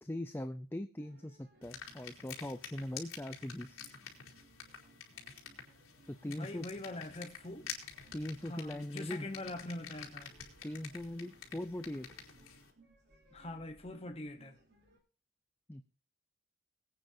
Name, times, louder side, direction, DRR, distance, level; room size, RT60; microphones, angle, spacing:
voice 1, 0.0-3.9 6.1-6.7 8.1-9.3 10.6-12.1 15.7-15.9, left 1 dB, 10° left, 0.5 m, -41 dB
sound 1, 1.0-15.0, right 2 dB, 50° right, 4.3 m, -66 dB
sound 2, 1.6-12.7, left 7 dB, 90° left, 3.7 m, -49 dB
voice 2, 6.2-7.7 8.5-10.3 13.3-14.6, left 1 dB, 30° left, 1.0 m, -43 dB
22.5 x 9.1 x 2.7 m
head